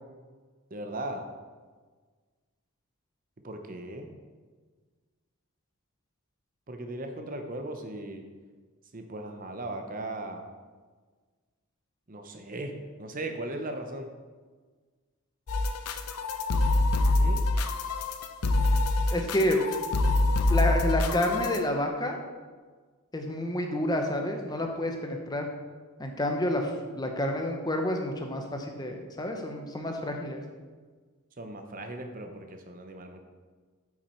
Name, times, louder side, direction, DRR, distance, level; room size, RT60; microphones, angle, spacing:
voice 1, 0.7-1.3 3.4-4.1 6.7-8.2 8.9-10.4 12.1-12.7 13.0-14.1 17.2-17.4 31.4-33.2, right 1 dB, 40° right, 5 dB, 0.7 m, -37 dB
sound 1, 15.5-21.6, left 2 dB, 90° left, 0.6 m, -25 dB
voice 2, 19.1-19.8 20.5-22.2 23.1-25.5 26.0-30.4, left 1 dB, 20° left, 3 dB, 0.7 m, -29 dB
8.7 x 6.1 x 4.4 m, 1.4 s
head